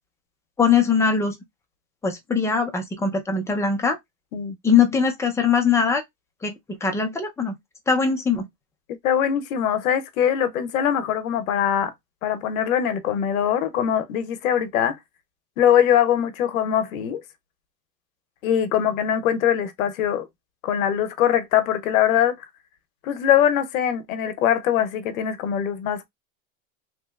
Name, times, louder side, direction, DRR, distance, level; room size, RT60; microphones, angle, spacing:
voice 1, 0.6-1.3 2.0-4.0 4.6-6.0 6.4-7.6 7.9-8.5, left 6 dB, 5° left, 0.5 m, -21 dB
voice 2, 9.0-11.9 12.2-15.0 15.6-17.2 18.4-20.3 20.6-22.4 23.0-26.1, left 9 dB, 80° left, 0.8 m, -22 dB
3.0 x 2.9 x 2.3 m
supercardioid pair, 130°, 41 cm